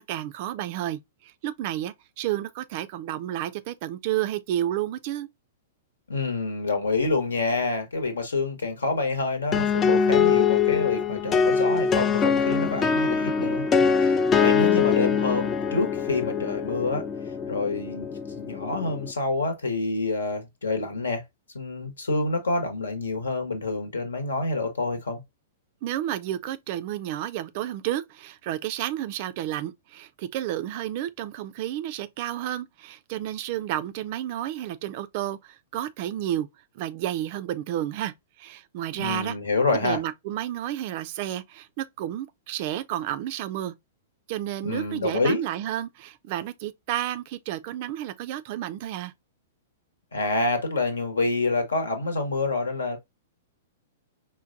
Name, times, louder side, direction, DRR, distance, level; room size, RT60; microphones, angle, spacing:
voice 1, 0.0-5.3 25.8-36.5 36.7-39.4 39.7-43.7 44.3-49.1, right 12 dB, 45° right, 0.4 m, -31 dB
voice 2, 6.1-17.0 17.5-21.2 21.5-25.2 39.0-40.0 44.6-45.4 50.1-53.0, left 3 dB, 70° left, 1.0 m, -27 dB
sound 1, 9.5-19.1, left 6 dB, 20° left, 0.4 m, -23 dB
4.5 x 2.2 x 2.5 m
figure-of-eight pair, 105°, 0 cm